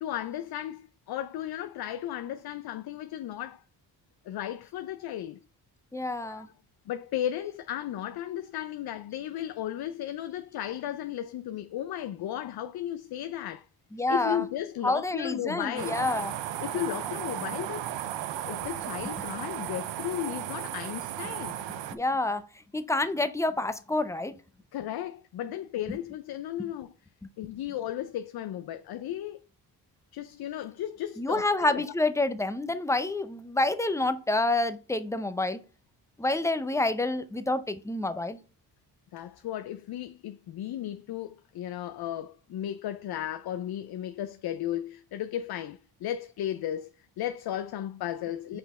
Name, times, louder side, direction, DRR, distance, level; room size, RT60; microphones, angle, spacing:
voice 1, 0.0-3.6 4.2-5.4 6.2-6.5 6.9-13.7 14.1-16.1 16.6-17.8 18.3-21.6 24.7-26.9 27.4-29.4 30.1-31.8 39.1-48.6, left 11 dB, 60° left, 0.5 m, -35 dB
voice 2, 5.9-6.5 13.9-14.4 14.8-16.3 21.9-22.4 22.7-24.3 25.9-26.0 31.2-35.6 36.2-38.4, left 2 dB, 5° left, 0.6 m, -28 dB
sound 1, 15.8-22.0, right 11 dB, 85° right, 0.6 m, -35 dB
5.8 x 4.1 x 4.2 m
cardioid pair, 75°, 43 cm